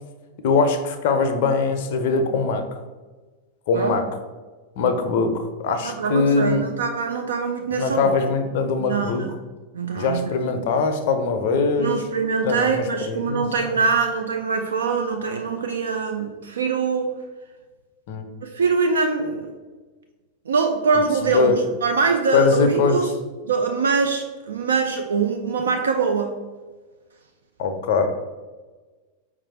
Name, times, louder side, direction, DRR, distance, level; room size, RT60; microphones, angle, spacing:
voice 1, 0.4-2.6 3.7-4.0 4.8-6.7 7.7-9.2 10.0-12.0 12.4-13.8 18.1-18.3 21.2-21.6 22.3-23.0 27.6-28.1, left 4 dB, 50° left, 7 dB, 0.5 m, -22 dB
voice 2, 5.8-8.1 8.8-9.3 9.7-10.3 11.8-17.1 18.4-19.5 20.5-23.1 23.4-26.3, right 5 dB, 65° right, 4 dB, 0.3 m, -23 dB
4.5 x 2.4 x 4.1 m, 1.3 s
figure-of-eight pair, 90°, 0 cm